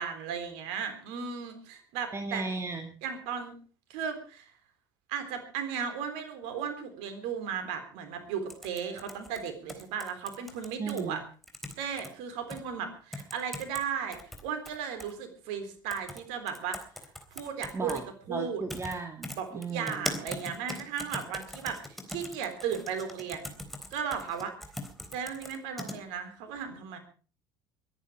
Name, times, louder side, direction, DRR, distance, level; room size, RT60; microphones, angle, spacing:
voice 1, 0.0-2.4 3.0-3.6 3.9-4.5 5.1-11.2 11.8-16.8 17.3-18.0 18.3-18.6 19.4-23.6 23.9-24.6 25.1-27.0, right 7 dB, 65° right, 8 dB, 3.8 m, -35 dB
voice 2, 2.1-3.0 10.8-11.2 17.7-18.0 18.3-20.2, right 3 dB, 25° right, 5 dB, 2.2 m, -36 dB
sound 1, 8.5-11.0 11.4-12.1 12.5-12.6 13.1-13.8 14.1-15.1 15.9-16.2 16.5-18.0 18.7-18.9 19.2-26.0, left 1 dB, ahead, 3.8 m, -40 dB
22.5 x 10.5 x 5.0 m, 0.40 s
figure-of-eight pair, 65°, 11 cm